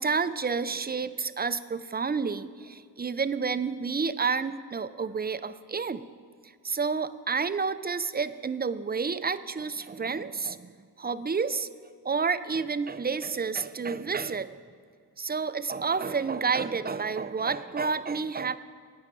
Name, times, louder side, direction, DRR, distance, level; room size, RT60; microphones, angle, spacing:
voice 1, 0.0-6.0 6.4-10.7 11.0-11.7 12.0-14.5 15.2-18.6, right 5 dB, 25° right, 14 dB, 0.4 m, -30 dB
13.0 x 5.7 x 9.2 m, 2.1 s
wide cardioid pair, 80°, 42 cm